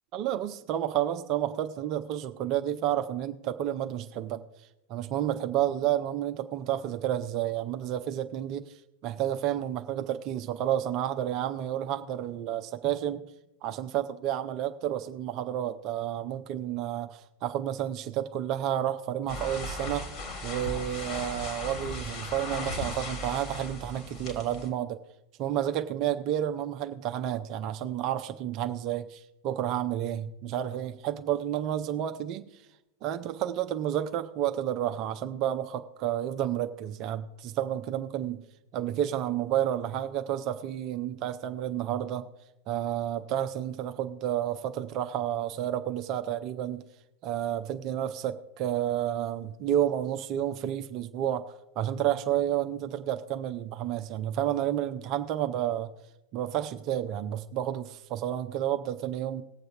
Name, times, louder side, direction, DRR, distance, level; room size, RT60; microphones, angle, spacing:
voice 1, 0.1-4.4 4.9-8.8 9.0-13.3 13.6-20.1 20.4-25.0 25.4-32.5 33.0-38.4 38.7-42.3 42.7-46.8 47.2-55.9 56.3-59.4, right 11 dB, 40° right, 9 dB, 0.6 m, -30 dB
sound 1, 19.3-24.7, left 2 dB, 30° left, 2.1 m, -37 dB
19.0 x 7.7 x 2.8 m, 0.91 s
figure-of-eight pair, 90°, 0 cm